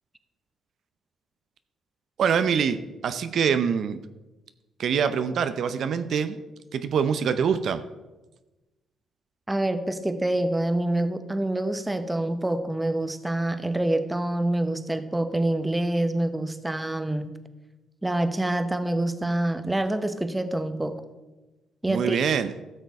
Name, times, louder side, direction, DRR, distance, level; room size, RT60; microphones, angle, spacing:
voice 1, 2.2-4.0 4.8-6.4 6.7-7.8 21.9-22.5, right 7 dB, 65° right, 11 dB, 0.6 m, -24 dB
voice 2, 9.5-17.3 18.0-21.0 21.8-22.2, right 1 dB, 10° right, 10 dB, 0.9 m, -26 dB
13.0 x 6.6 x 4.7 m, 1.1 s
cardioid pair, 90°, 0 cm